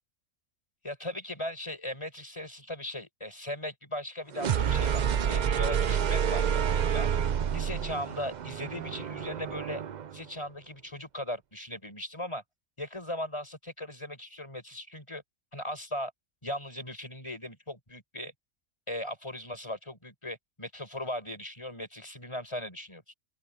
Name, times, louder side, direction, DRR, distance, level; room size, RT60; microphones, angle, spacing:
voice 1, 0.8-5.0 5.3-6.4 6.9-7.1 7.5-9.8 10.1-12.4 12.8-15.2 15.5-16.1 16.4-18.3 18.9-23.0, left 1 dB, 20° left, 6.5 m, -38 dB
sound 1, 4.3-10.2, right 8 dB, 55° right, 0.5 m, -28 dB
open air
omnidirectional pair, 1.5 m